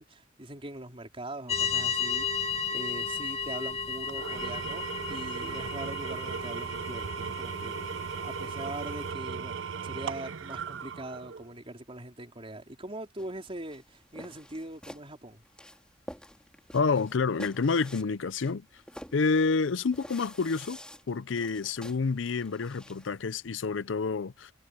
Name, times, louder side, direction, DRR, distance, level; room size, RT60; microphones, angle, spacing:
voice 1, 0.0-4.8 5.1-7.9 8.2-15.4, right 1 dB, 30° right, 4.4 m, -42 dB
sound 1, 1.5-9.1, left 6 dB, 35° left, 2.0 m, -34 dB
Engine / Tools, 4.1-11.6, right 6 dB, 80° right, 0.6 m, -37 dB
sound 2, 13.2-23.2, left 1 dB, 5° left, 3.4 m, -49 dB
voice 2, 16.7-18.6 19.1-20.8 21.1-24.5, left 4 dB, 85° left, 0.6 m, -28 dB
head